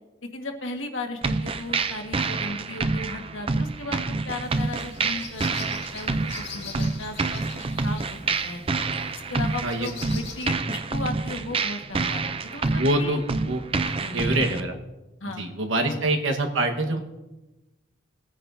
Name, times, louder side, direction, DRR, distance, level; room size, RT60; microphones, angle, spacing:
voice 1, 0.2-7.4 7.8-8.6 9.1-13.2 14.0-14.2 15.2-15.4 15.8-16.0, left 2 dB, 80° left, 3 dB, 1.6 m, -36 dB
sound 1, 1.2-14.6, right 3 dB, 30° right, 0.4 m, -28 dB
sound 2, 4.4-10.5, left 5 dB, 60° left, 1.8 m, -42 dB
voice 2, 12.8-13.2 13.5-13.6 14.1-14.8 15.4-17.0, right 2 dB, 80° right, 3 dB, 1.4 m, -25 dB
20.5 x 9.8 x 2.7 m, 1.1 s
head